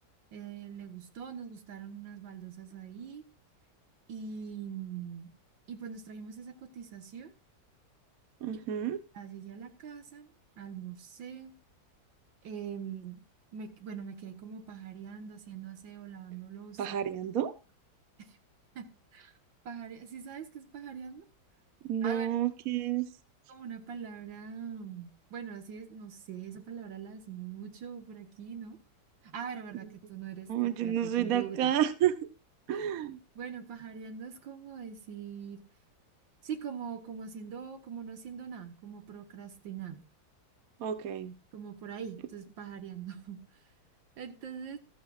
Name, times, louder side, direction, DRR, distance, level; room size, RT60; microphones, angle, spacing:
voice 1, 0.3-3.2 4.1-5.3 5.7-7.3 9.1-10.3 10.6-11.5 12.4-13.2 13.5-17.0 18.2-18.4 18.8-18.9 19.1-19.3 19.7-21.3 22.0-22.3 23.5-28.8 29.2-31.8 32.7-32.9 33.4-35.6 36.4-40.0 41.5-43.4 44.2-44.8, right 7 dB, 75° right, 8 dB, 2.0 m, -42 dB
voice 2, 8.4-9.0 16.8-17.5 21.8-23.1 30.5-32.2 32.7-33.2 40.8-41.3, right 10 dB, 55° right, 12 dB, 1.2 m, -30 dB
15.0 x 12.5 x 2.4 m, 0.28 s
omnidirectional pair, 2.1 m